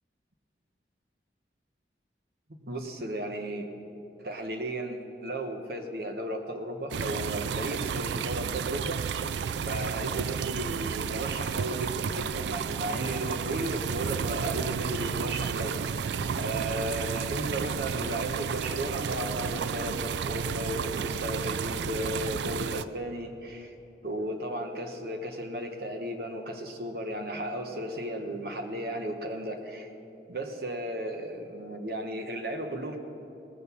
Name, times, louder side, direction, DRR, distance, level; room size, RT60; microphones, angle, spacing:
voice 1, 2.5-3.7 4.2-9.0 9.6-15.8 16.4-23.7 24.0-29.9 30.3-33.0, right 1 dB, 60° right, 4 dB, 1.2 m, -35 dB
sound 1, 6.9-22.8, right 6 dB, 80° right, 0.3 m, -32 dB
19.0 x 6.5 x 6.9 m, 2.8 s
head